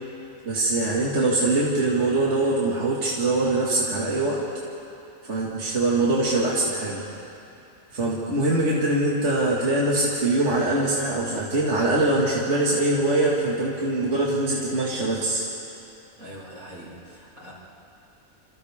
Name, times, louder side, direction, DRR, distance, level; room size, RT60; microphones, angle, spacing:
voice 1, 0.5-4.4 5.3-7.0 7.9-15.4, right 2 dB, 55° right, -5 dB, 2.6 m, -23 dB
voice 2, 16.2-17.5, equal, 80° right, -7 dB, 7.3 m, -42 dB
29.5 x 28.0 x 3.7 m, 2.8 s
omnidirectional pair, 1.5 m